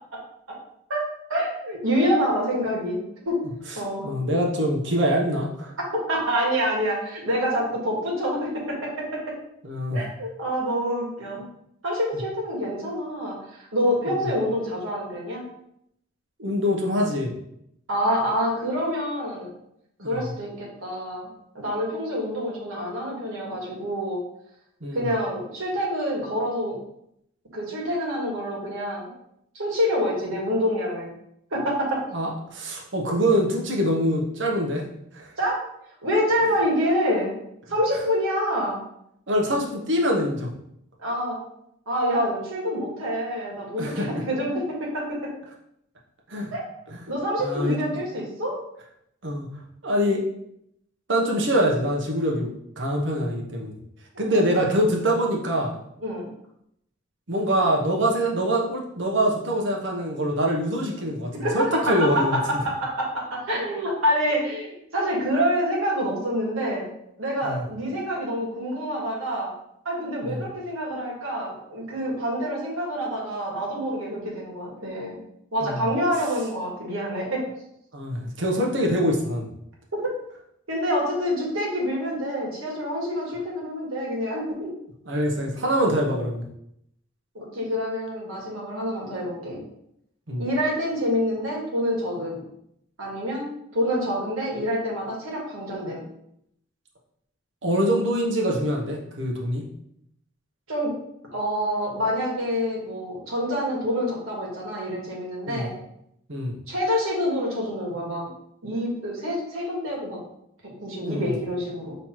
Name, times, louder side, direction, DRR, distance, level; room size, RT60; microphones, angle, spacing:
voice 1, 1.3-3.0 3.2-3.4 3.7-4.1 5.9-9.3 9.9-11.4 11.8-15.4 17.9-19.5 20.0-21.3 21.5-24.2 24.9-26.8 27.5-29.1 29.5-31.1 31.5-32.0 35.4-35.6 36.0-37.4 37.7-38.8 41.0-41.4 41.9-45.3 46.5-46.6 47.1-48.6 54.1-54.6 56.0-56.3 61.4-66.9 67.2-69.5 69.8-75.2 75.5-77.4 80.0-80.1 80.7-84.7 87.3-89.6 90.4-92.4 93.0-93.5 93.7-96.0 100.7-100.9 101.3-105.8 106.7-108.3 108.6-110.2 110.8-112.0, equal, 80° right, -3 dB, 1.5 m, -27 dB
voice 2, 4.0-5.7 9.6-10.0 14.0-14.3 16.4-17.3 20.0-20.3 24.8-25.1 32.1-34.8 35.1-35.3 39.3-40.5 43.8-44.1 46.3-46.5 46.9-47.0 47.4-47.8 49.2-49.5 49.8-50.2 51.1-52.5 52.8-53.8 54.2-55.8 57.3-62.4 67.4-67.6 70.2-70.4 75.6-75.8 77.9-79.5 85.1-86.4 90.3-90.4 97.6-99.6 105.5-105.7 106.3-106.5 111.0-111.3, equal, 60° right, -1 dB, 0.9 m, -24 dB
5.6 x 3.1 x 3.0 m, 0.75 s
head